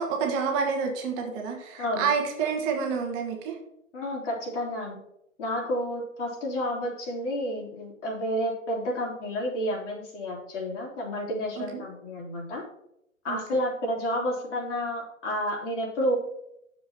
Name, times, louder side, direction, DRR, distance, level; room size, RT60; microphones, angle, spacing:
voice 1, 0.0-3.5 11.6-11.8 13.3-13.6, right 6 dB, 30° right, 2 dB, 1.4 m, -29 dB
voice 2, 3.9-5.0 5.4-12.6 13.2-16.2, equal, 55° left, -4 dB, 3.5 m, -30 dB
11.0 x 7.1 x 2.9 m, 0.79 s
figure-of-eight pair, 115°, 41 cm